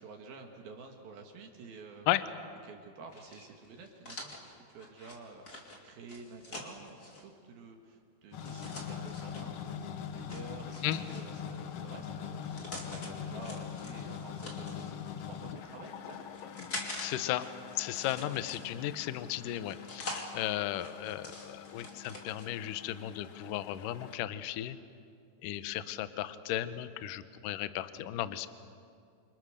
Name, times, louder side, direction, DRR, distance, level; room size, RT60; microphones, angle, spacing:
voice 1, 0.0-2.1 2.6-16.3, right 4 dB, 70° right, 3 dB, 3.5 m, -50 dB
sound 1, 3.1-7.2 8.4-9.5 10.3-11.5 12.2-13.1 13.4-14.9 15.6-17.1 17.4-18.9 19.5-20.3 20.7-22.5, left 2 dB, 25° left, 3.2 m, -45 dB
sound 2, 8.3-24.2, left 8 dB, 90° left, 1.3 m, -43 dB
voice 2, 17.0-17.5 17.8-24.8 25.4-28.5, left 13 dB, 70° left, 12 dB, 2.2 m, -35 dB
28.0 x 27.0 x 6.7 m, 2.3 s
omnidirectional pair, 4.6 m